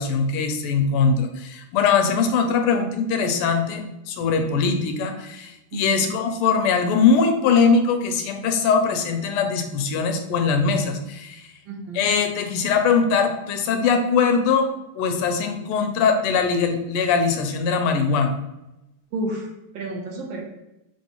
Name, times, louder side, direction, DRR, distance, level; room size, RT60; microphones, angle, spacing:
voice 1, 0.0-11.4 11.9-14.7 14.9-18.3, left 5 dB, 90° left, 5 dB, 1.5 m, -21 dB
voice 2, 5.7-6.1 11.6-12.1 19.1-20.4, right 2 dB, 70° right, 0 dB, 1.4 m, -31 dB
5.4 x 2.9 x 2.9 m, 0.92 s
omnidirectional pair, 2.4 m